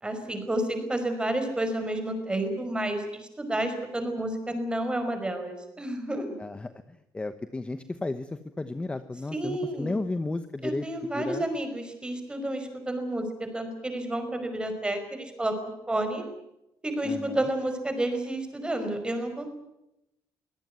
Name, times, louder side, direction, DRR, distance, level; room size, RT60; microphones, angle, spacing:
voice 1, 0.0-6.3 9.3-10.0 10.6-16.2 16.8-19.5, right 1 dB, 10° right, 7 dB, 5.2 m, -30 dB
voice 2, 6.4-6.7 7.1-11.4 17.0-17.5, left 2 dB, 15° left, 11 dB, 1.0 m, -33 dB
24.0 x 17.0 x 9.5 m, 0.88 s
cardioid pair, 135°, 8 cm